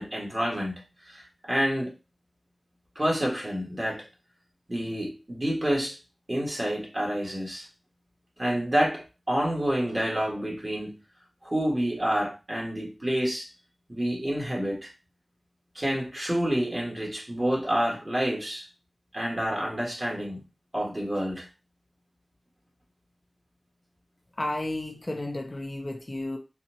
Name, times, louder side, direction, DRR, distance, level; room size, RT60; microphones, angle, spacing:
voice 1, 0.0-1.9 3.0-4.1 4.7-6.0 6.3-7.7 8.4-11.0 11.4-13.5 13.9-14.9 15.8-18.7 19.1-20.4 20.7-21.5, equal, 35° right, 1.8 m, -28 dB
voice 2, 24.4-26.4, left 1 dB, 40° left, 0.7 m, -32 dB
4.2 x 2.5 x 2.9 m
cardioid pair, 40°, 0 cm